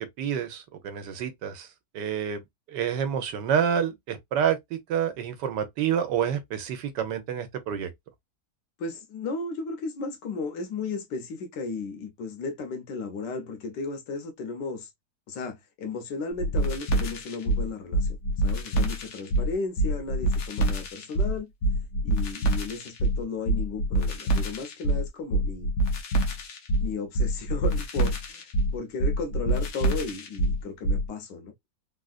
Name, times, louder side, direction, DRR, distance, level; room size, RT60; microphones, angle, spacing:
voice 1, 0.2-1.7 1.9-2.4 2.7-7.9, right 8 dB, 85° right, 1.4 m, -28 dB
voice 2, 8.8-14.9 15.3-18.2 18.4-21.5 22.0-25.7 26.8-31.7, left 4 dB, 85° left, 1.5 m, -35 dB
sound 1, 16.4-31.1, right 1 dB, 60° left, 1.2 m, -26 dB
3.7 x 2.5 x 2.4 m
omnidirectional pair, 1.8 m